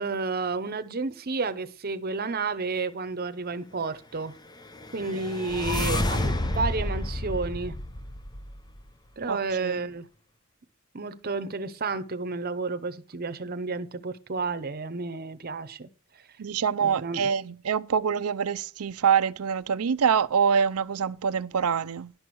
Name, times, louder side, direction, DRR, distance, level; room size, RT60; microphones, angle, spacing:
voice 1, 0.0-4.4 4.9-7.8 9.2-10.1 10.9-15.9 16.8-17.3, right 4 dB, 45° right, 0.8 m, -31 dB
sound 1, 4.7-8.8, left 1 dB, 20° left, 0.6 m, -30 dB
voice 2, 9.3-9.8 16.4-22.1, right 7 dB, 80° right, 0.5 m, -25 dB
11.5 x 6.1 x 4.7 m
head